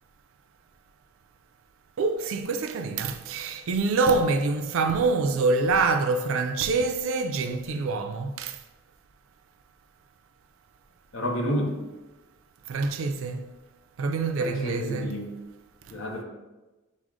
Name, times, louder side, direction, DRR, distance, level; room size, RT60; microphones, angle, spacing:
voice 1, 2.0-8.5 12.7-13.4 14.0-15.1, right 3 dB, 65° right, 0.4 m, -25 dB
voice 2, 11.1-11.8 14.4-15.3 15.9-16.2, equal, 65° left, 0.7 m, -30 dB
6.0 x 2.0 x 3.6 m
head